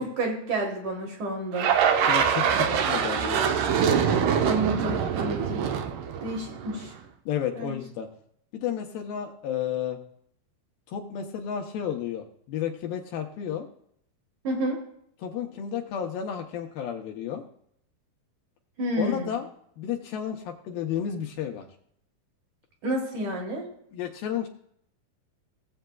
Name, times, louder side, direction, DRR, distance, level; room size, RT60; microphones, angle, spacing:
voice 1, 0.2-1.7 4.4-5.7 6.2-6.9 7.6-7.7 14.4-14.8 18.8-19.3 22.8-23.6, right 1 dB, 55° right, 0 dB, 2.6 m, -30 dB
sound 1, 1.6-6.9, right 7 dB, 80° right, 2.0 m, -24 dB
voice 2, 2.1-3.5 7.3-8.1 8.5-10.0 10.9-13.7 15.2-17.4 19.0-19.5 19.8-21.7 23.9-24.5, left 9 dB, 75° left, 3 dB, 2.4 m, -32 dB
18.0 x 7.8 x 2.3 m, 0.68 s
omnidirectional pair, 4.6 m